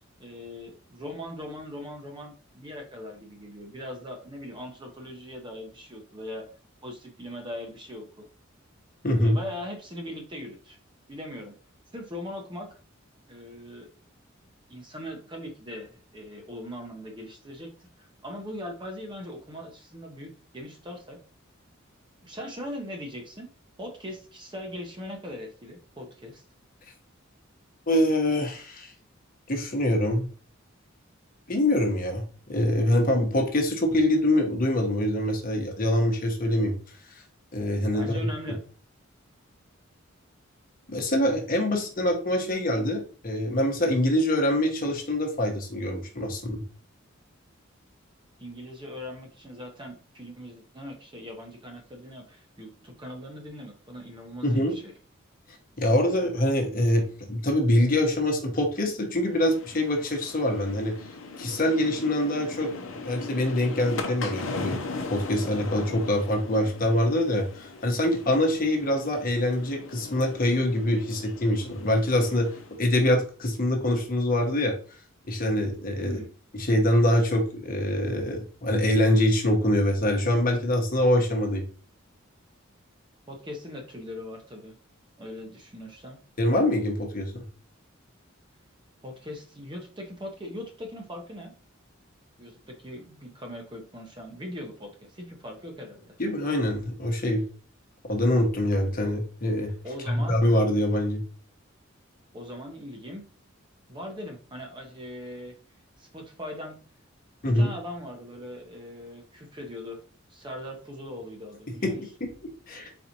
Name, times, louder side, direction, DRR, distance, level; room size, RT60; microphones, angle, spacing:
voice 1, 0.2-6.4 6.8-8.3 9.2-10.8 11.1-11.5 11.9-12.7 13.3-13.9 14.7-21.2 22.2-23.5 23.8-26.4 37.9-38.6 48.4-54.9 76.0-76.3 83.3-84.7 85.2-86.2 89.0-91.5 92.4-96.2 99.8-100.4 102.3-103.2 103.9-105.5 106.0-106.8 107.5-110.0 110.3-112.0, left 1 dB, 25° right, 2 dB, 0.8 m, -40 dB
voice 2, 9.0-9.4 27.9-28.9 29.5-30.3 31.5-32.2 32.5-36.7 37.5-38.3 40.9-46.6 54.4-54.8 55.8-60.9 61.4-62.7 63.0-64.8 65.1-72.5 72.8-74.8 75.3-76.2 76.5-81.6 86.4-87.4 96.2-97.4 98.0-99.7 100.1-101.2 107.4-107.7 111.8-111.9 112.2-112.3 112.7-112.9, left 1 dB, 45° left, 2 dB, 1.0 m, -24 dB
sound 1, 59.3-72.8, left 3 dB, 75° left, 0.7 m, -39 dB
4.3 x 4.0 x 2.8 m, 0.39 s
head